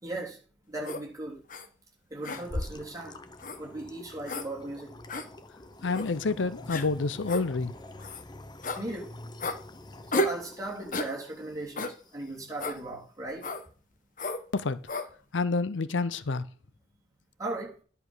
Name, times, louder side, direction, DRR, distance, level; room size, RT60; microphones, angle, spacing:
voice 1, 0.0-0.4 0.7-1.4 2.1-3.2 3.6-4.9 8.8-9.1 10.1-13.5 17.4-17.7, right 2 dB, 15° right, 3.2 m, -37 dB
sound 1, 0.8-1.0 1.5-1.7 2.2-2.8 3.4-3.6 4.2-4.5 5.1-5.3 5.9-6.1 6.7-6.9 7.3-7.4 8.0-8.2 8.6-8.8 9.4-9.6 10.1-10.4 10.9-11.1 11.8-12.0 12.6-12.8 13.4-13.6 14.2-14.4 14.9-15.1, left 1 dB, 45° left, 1.0 m, -32 dB
sound 2, 2.3-12.7, left 2 dB, 20° left, 0.7 m, -48 dB
voice 2, 5.8-7.7 14.5-14.8 15.3-16.4, left 3 dB, 75° left, 0.6 m, -28 dB
11.0 x 5.7 x 6.3 m
head